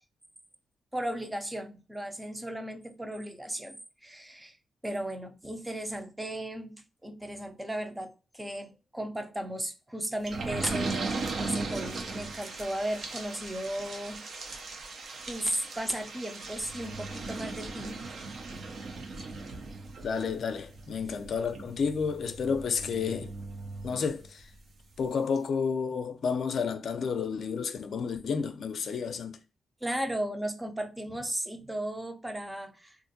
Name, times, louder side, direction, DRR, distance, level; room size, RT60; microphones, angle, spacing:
voice 1, 0.9-4.5 4.8-14.3 15.3-18.0 18.5-18.6 21.0-21.2 29.8-33.0, right 1 dB, 10° right, 0.5 m, -35 dB
sound 1, 10.3-24.6 25.0-25.1 25.4-25.5, right 3 dB, 60° right, 0.6 m, -38 dB
voice 2, 20.0-23.3 23.8-24.4 25.0-29.4, left 5 dB, 65° left, 0.5 m, -31 dB
3.6 x 2.5 x 2.6 m
wide cardioid pair, 140°, 0 cm